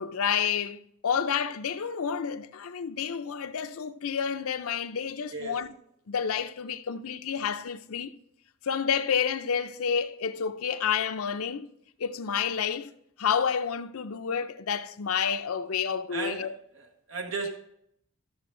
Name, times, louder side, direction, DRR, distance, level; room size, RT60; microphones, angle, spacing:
voice 1, 0.0-5.7 6.1-8.2 8.6-11.7 12.0-12.9 13.2-16.5, left 7 dB, 75° left, 0.5 m, -29 dB
voice 2, 16.1-16.5 16.7-17.5, right 4 dB, 60° right, 1.3 m, -35 dB
13.5 x 6.8 x 3.8 m
head